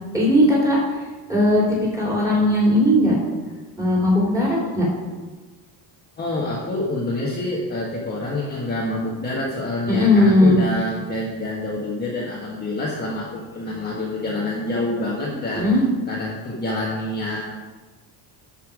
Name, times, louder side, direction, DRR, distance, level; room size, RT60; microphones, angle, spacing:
voice 1, 0.1-0.8 1.3-3.2 3.8-4.9 9.9-10.6 15.5-15.8, left 1 dB, 5° right, -6 dB, 3.6 m, -17 dB
voice 2, 6.2-15.7 16.1-17.4, left 1 dB, 20° left, -5 dB, 1.5 m, -27 dB
13.0 x 5.7 x 5.0 m, 1.3 s
cardioid pair, 155°, 44 cm